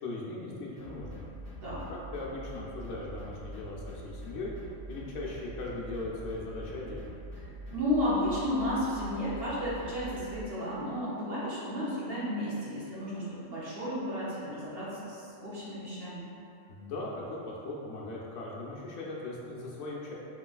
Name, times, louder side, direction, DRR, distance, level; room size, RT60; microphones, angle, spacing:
voice 1, 0.0-1.3 1.6-4.5 4.9-7.1 16.7-20.1, left 2 dB, 80° left, -4 dB, 0.9 m, -39 dB
sound 1, 0.8-10.4, right 1 dB, 20° left, 0.7 m, -44 dB
voice 2, 7.7-16.3, left 1 dB, 55° right, -9 dB, 1.0 m, -33 dB
3.1 x 3.0 x 2.3 m, 2.5 s
omnidirectional pair, 1.3 m